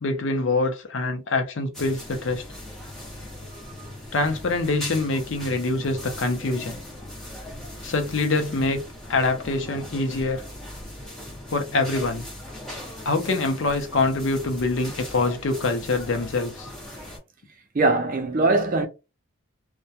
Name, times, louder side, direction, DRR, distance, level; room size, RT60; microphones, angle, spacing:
voice 1, 0.0-2.4 4.1-6.8 7.8-8.8 9.1-10.4 11.5-12.3 13.1-16.7, left 3 dB, 60° left, 0.5 m, -25 dB
sound 1, 1.7-17.2, left 1 dB, ahead, 0.9 m, -39 dB
voice 2, 17.7-18.9, right 2 dB, 40° right, 0.4 m, -21 dB
2.2 x 2.1 x 2.7 m
head